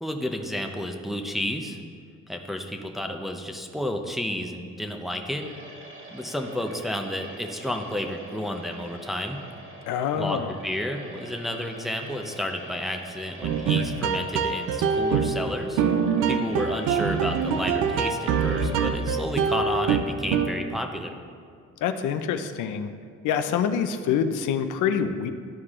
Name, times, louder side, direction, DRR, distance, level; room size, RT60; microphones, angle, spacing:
voice 1, 0.0-1.8 2.3-5.5 6.1-9.4 10.2-15.8 16.3-21.1, left 1 dB, ahead, 3 dB, 0.7 m, -31 dB
sound 1, 5.4-19.4, right 2 dB, 45° right, 1.4 m, -45 dB
voice 2, 9.9-10.5 21.8-22.9 23.2-25.3, left 8 dB, 85° left, 8 dB, 0.6 m, -26 dB
sound 2, 13.4-20.7, right 6 dB, 85° right, 0.6 m, -24 dB
13.0 x 4.7 x 3.7 m, 2.2 s
cardioid pair, 90°, 30 cm